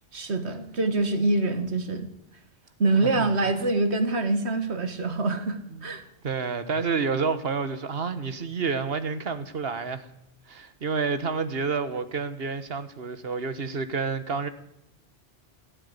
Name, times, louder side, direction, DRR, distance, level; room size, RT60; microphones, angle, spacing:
voice 1, 0.1-2.1 2.8-6.0, right 2 dB, 80° right, 1.9 m, -25 dB
voice 2, 3.0-3.3 3.6-3.7 5.7-5.9 6.2-10.1 10.5-14.5, right 5 dB, 65° right, 1.5 m, -29 dB
17.0 x 8.8 x 9.6 m
omnidirectional pair, 1.1 m